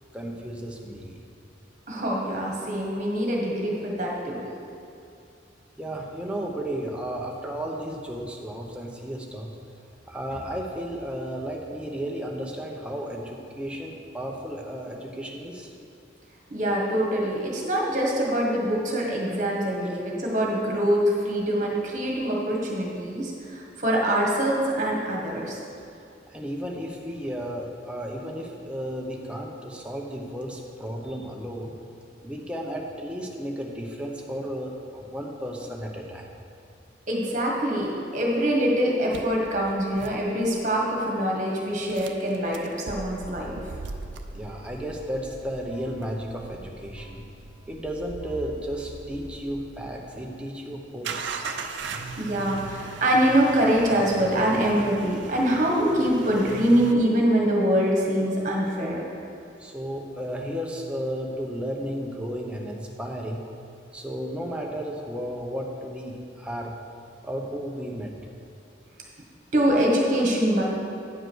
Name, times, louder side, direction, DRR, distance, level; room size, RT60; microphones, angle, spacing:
voice 1, 0.1-1.2 5.8-9.5 10.1-15.7 26.3-31.7 32.2-36.3 44.3-47.2 47.7-51.4 59.6-63.4 63.9-66.8 67.2-68.1, equal, 5° right, -1 dB, 0.8 m, -33 dB
voice 2, 1.9-4.5 16.5-25.6 37.1-43.5 52.2-59.0 69.5-70.6, right 1 dB, 40° right, -2 dB, 1.5 m, -24 dB
sound 1, 39.1-40.8 41.9-50.0 51.0-56.9, right 4 dB, 75° right, 0.5 m, -39 dB
9.1 x 5.0 x 6.2 m, 2.6 s
head